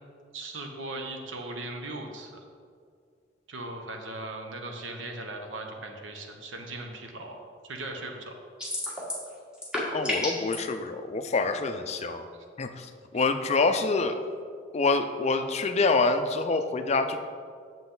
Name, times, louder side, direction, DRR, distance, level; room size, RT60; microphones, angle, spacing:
voice 1, 0.3-2.4 3.5-7.4 7.6-8.3, right 2 dB, 80° right, 3 dB, 1.0 m, -38 dB
sound 1, 8.6-9.3 9.5-10.6, left 1 dB, 5° right, 1.5 m, -30 dB
voice 2, 9.9-12.3 12.6-14.2 14.7-17.2, left 3 dB, 35° left, 8 dB, 0.4 m, -26 dB
8.1 x 7.1 x 3.9 m, 2.1 s
head